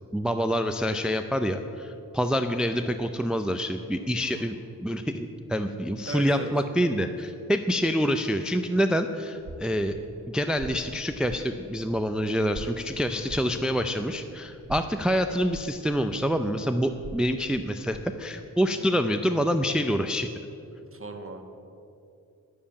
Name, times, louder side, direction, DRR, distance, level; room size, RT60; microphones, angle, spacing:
voice 1, 0.1-4.6 4.8-9.9 10.3-20.3, equal, ahead, 8 dB, 0.5 m, -26 dB
voice 2, 6.0-6.5 13.0-13.2 18.7-19.0 20.9-21.4, right 2 dB, 35° right, 4 dB, 1.4 m, -38 dB
sound 1, 9.3-18.2, right 3 dB, 75° right, 1.8 m, -45 dB
9.4 x 7.1 x 8.6 m, 2.6 s
cardioid pair, 70°, 36 cm